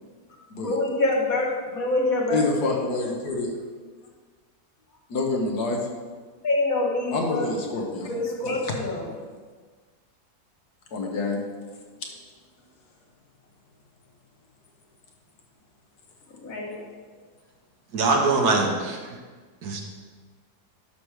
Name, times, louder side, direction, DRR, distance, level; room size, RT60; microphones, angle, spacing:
voice 1, 0.6-2.8 6.4-7.5 8.1-9.2 16.4-16.9, left 2 dB, 60° left, -2 dB, 1.8 m, -26 dB
voice 2, 2.3-3.5 5.1-5.8 7.1-8.1 8.4-8.8 10.9-11.4, left 3 dB, 75° left, 1 dB, 1.7 m, -27 dB
voice 3, 17.9-19.2 19.6-19.8, right 3 dB, 75° right, 1 dB, 1.6 m, -23 dB
11.0 x 6.2 x 3.3 m, 1.5 s
omnidirectional pair, 1.7 m